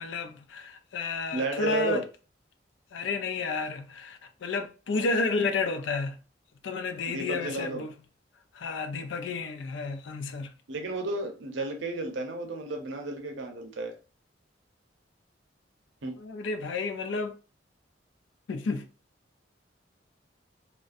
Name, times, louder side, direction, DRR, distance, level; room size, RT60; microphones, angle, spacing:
voice 1, 0.0-2.0 2.9-6.2 6.6-7.9 8.5-10.5 16.2-17.3 18.5-18.8, left 3 dB, 80° left, 0.4 m, -31 dB
voice 2, 1.3-2.0 7.1-7.8 10.7-13.9 16.0-16.2, right 2 dB, 85° right, 0.6 m, -32 dB
2.4 x 2.1 x 2.4 m
head